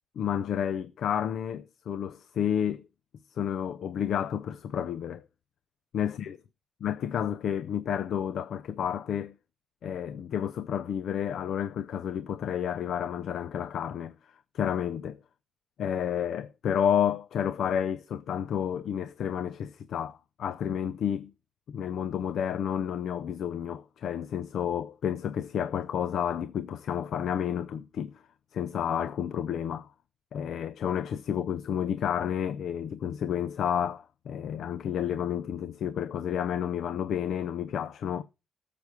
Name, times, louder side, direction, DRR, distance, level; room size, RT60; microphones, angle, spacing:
voice 1, 0.2-2.8 3.3-5.2 5.9-6.4 6.8-9.3 9.8-14.1 14.5-15.2 15.8-21.3 21.7-28.2 28.5-29.9 30.3-38.2, left 9 dB, 70° left, 0.5 m, -30 dB
13.0 x 6.9 x 4.7 m
cardioid pair, 90°, 0 cm